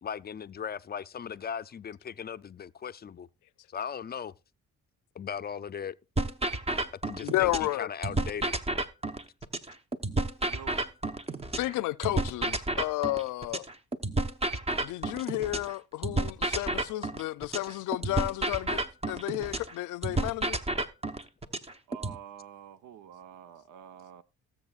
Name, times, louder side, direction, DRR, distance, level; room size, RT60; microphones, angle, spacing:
voice 1, 0.0-3.3 3.7-4.3 5.2-5.9 7.0-7.5 7.8-8.5, left 7 dB, 35° left, 0.5 m, -37 dB
sound 1, 6.2-7.7 8.0-11.7 12.0-15.7 16.0-19.7 20.0-22.2, right 2 dB, 20° right, 0.9 m, -31 dB
voice 2, 7.2-7.9 11.6-13.7 14.8-18.8 19.1-20.6, left 17 dB, 85° left, 0.5 m, -32 dB
voice 3, 21.9-24.2, right 9 dB, 80° right, 0.9 m, -47 dB
19.5 x 7.6 x 2.4 m
cardioid pair, 90°, 30 cm